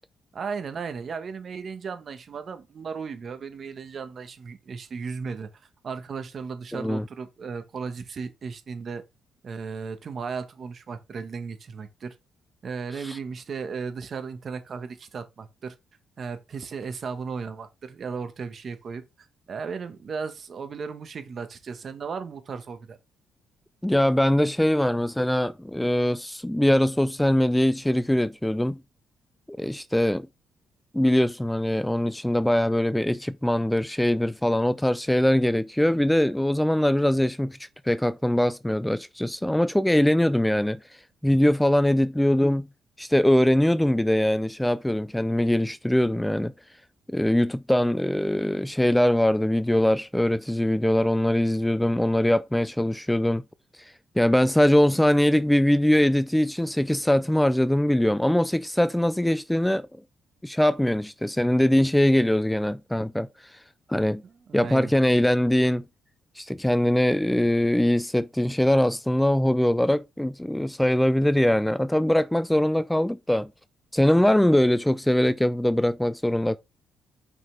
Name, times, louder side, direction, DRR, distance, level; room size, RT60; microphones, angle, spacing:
voice 1, 0.3-5.5 5.8-9.0 9.4-12.1 12.6-15.7 16.2-19.0 19.5-23.0 64.2-64.9, right 5 dB, 50° right, 1.2 m, -35 dB
voice 2, 6.7-7.0 13.0-13.2 23.8-28.8 29.5-30.3 30.9-37.6 37.8-40.8 41.2-42.7 43.0-46.5 47.1-53.4 54.2-59.9 60.4-63.6 63.9-64.2 64.5-65.8 66.4-73.5 73.9-76.6, left 1 dB, 5° left, 0.3 m, -22 dB
5.6 x 5.4 x 3.2 m
cardioid pair, 90°, 0 cm